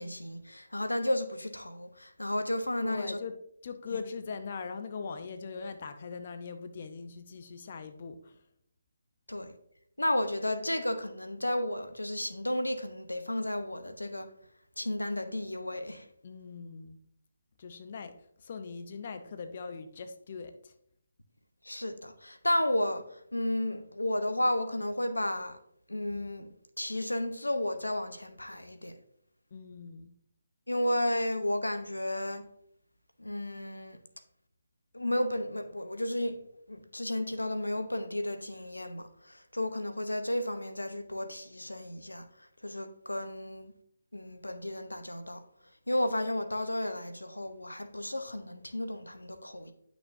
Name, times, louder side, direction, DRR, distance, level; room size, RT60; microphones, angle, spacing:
voice 1, 0.0-3.2 9.3-9.5 10.0-14.3 14.8-16.1 21.6-25.6 25.9-29.0 30.7-32.5 33.2-34.0 34.9-43.7 44.1-45.4 45.9-49.7, left 1 dB, 90° left, 0.8 m, -33 dB
voice 2, 2.8-8.5 16.2-17.0 17.6-20.8 29.5-30.1, left 5 dB, 45° left, 0.7 m, -41 dB
9.6 x 6.1 x 2.7 m
figure-of-eight pair, 150°, 0 cm